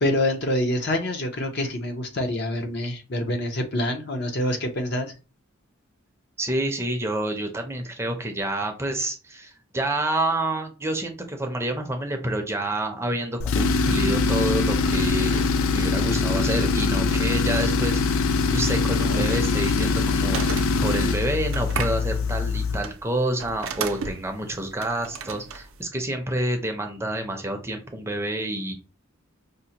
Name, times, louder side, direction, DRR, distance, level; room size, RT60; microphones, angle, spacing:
voice 1, 0.0-5.1, left 1 dB, 55° left, 5 dB, 0.7 m, -26 dB
voice 2, 6.4-28.7, right 1 dB, 15° right, 4 dB, 0.5 m, -28 dB
Tools, 13.4-22.9, left 4 dB, 85° left, 0.4 m, -23 dB
sound 1, 18.9-25.8, right 6 dB, 80° right, 0.5 m, -36 dB
5.1 x 2.1 x 2.8 m, 0.32 s
head